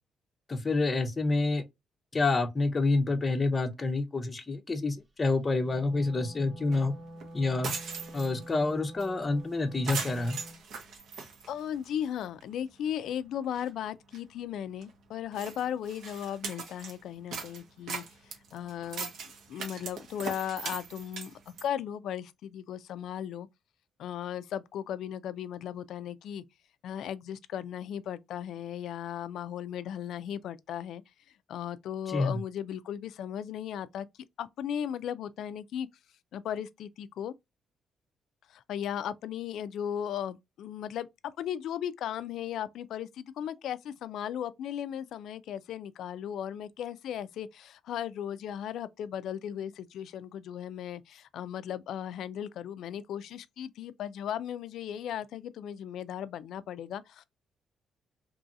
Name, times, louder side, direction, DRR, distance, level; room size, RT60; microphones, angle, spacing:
voice 1, 0.5-1.6 2.1-6.9 7.3-7.7 8.1-10.4 32.1-32.4, left 3 dB, 25° left, 0.6 m, -28 dB
Wind instrument woodwind instrument, 5.4-10.6, equal, 35° right, 1.0 m, -47 dB
sound 1, 6.7-6.8 7.2-7.3 7.5-8.5 9.0-9.1 9.4-9.5 9.9-12.0 12.4-12.5 13.1-13.2 13.4-13.7 14.1-14.2 14.8-14.9 15.3-17.0 17.3-21.7, right 5 dB, 75° right, 0.9 m, -40 dB
voice 2, 11.5-19.1 19.5-23.5 24.0-26.4 26.8-31.0 31.5-34.1 34.4-35.9 36.3-37.3 38.5-41.1 41.4-57.2, left 9 dB, 75° left, 0.3 m, -36 dB
3.0 x 2.7 x 2.3 m
cardioid pair, 90°, 0 cm